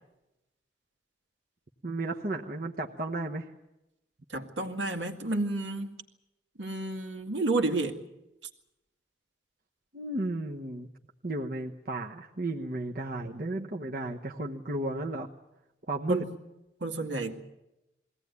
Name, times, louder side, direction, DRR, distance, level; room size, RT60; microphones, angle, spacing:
voice 1, 1.8-3.5 9.9-10.9 11.2-15.3 15.9-16.3, right 2 dB, 50° right, 1 dB, 1.1 m, -33 dB
voice 2, 4.3-5.9 6.6-8.0 16.1-16.3 16.8-17.3, right 2 dB, 80° right, 4 dB, 2.2 m, -30 dB
22.0 x 17.5 x 9.5 m, 0.94 s
head